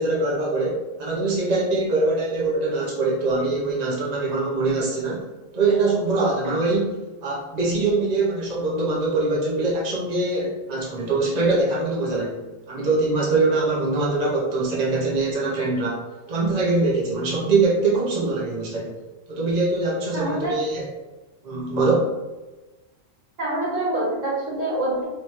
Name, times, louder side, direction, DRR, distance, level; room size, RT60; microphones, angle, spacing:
voice 1, 0.0-5.2 5.5-7.0 7.2-12.4 12.7-16.0 16.3-18.9 19.3-20.9 21.4-22.1, right 3 dB, 35° right, -4 dB, 1.0 m, -23 dB
voice 2, 20.1-20.5 23.4-25.0, right 1 dB, 85° right, -6 dB, 2.0 m, -26 dB
3.2 x 3.2 x 4.3 m, 1.1 s
omnidirectional pair, 1.3 m